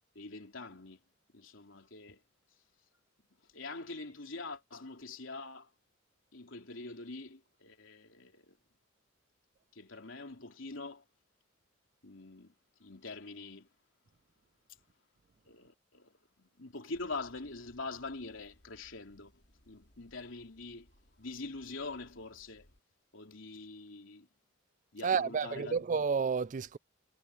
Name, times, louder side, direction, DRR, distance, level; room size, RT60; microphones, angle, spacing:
voice 1, 0.1-1.0 1.3-2.2 3.4-5.7 6.3-8.6 9.7-11.0 12.0-12.5 12.8-13.7 15.4-19.3 19.7-20.9 21.2-22.7 23.1-24.3 24.9-25.8, left 3 dB, 80° left, 3.2 m, -44 dB
sound 1, 16.9-22.8, equal, 55° left, 3.7 m, -66 dB
voice 2, 25.0-26.8, right 6 dB, 40° right, 0.3 m, -30 dB
head